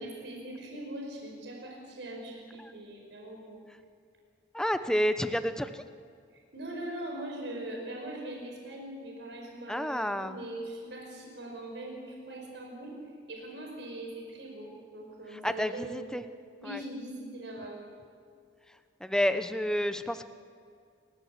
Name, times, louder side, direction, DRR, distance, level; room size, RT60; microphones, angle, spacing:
voice 1, 0.0-3.6 6.5-13.0 13.3-16.1 16.6-17.9, right 1 dB, 75° right, 0 dB, 5.0 m, -41 dB
voice 2, 4.5-5.8 9.7-10.4 15.3-16.2 16.6-16.8 19.0-20.2, equal, 5° left, 10 dB, 0.9 m, -30 dB
28.5 x 15.5 x 8.3 m, 2.3 s
head